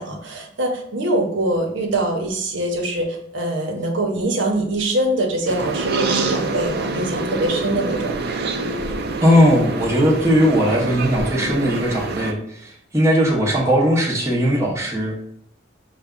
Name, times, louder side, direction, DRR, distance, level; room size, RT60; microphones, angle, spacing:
voice 1, 0.0-8.1, right 1 dB, 70° right, 1 dB, 0.9 m, -23 dB
sound 1, 5.5-12.3, right 3 dB, 55° right, 0.5 m, -26 dB
voice 2, 9.2-15.1, equal, 15° right, -3 dB, 0.8 m, -18 dB
5.9 x 2.2 x 3.7 m, 0.68 s
head